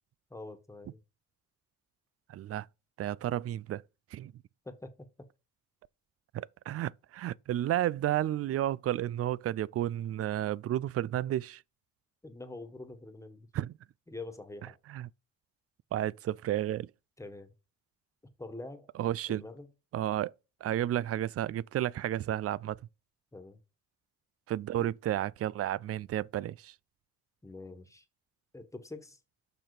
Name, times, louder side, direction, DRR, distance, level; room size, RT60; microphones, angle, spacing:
voice 1, 0.3-1.0 4.6-5.1 12.2-13.5 14.1-14.8 17.2-17.5 18.4-18.9 19.3-19.7 23.3-23.6 24.7-24.9 27.4-28.0 28.5-29.2, left 2 dB, 10° left, 1.5 m, -45 dB
voice 2, 2.3-2.7 3.0-3.8 4.1-4.3 6.3-11.6 13.5-13.7 14.9-15.1 15.9-16.9 19.0-19.4 19.9-20.3 20.6-22.8 24.5-26.7, right 12 dB, 50° right, 0.4 m, -32 dB
6.7 x 5.9 x 5.0 m
cardioid pair, 90°, 30 cm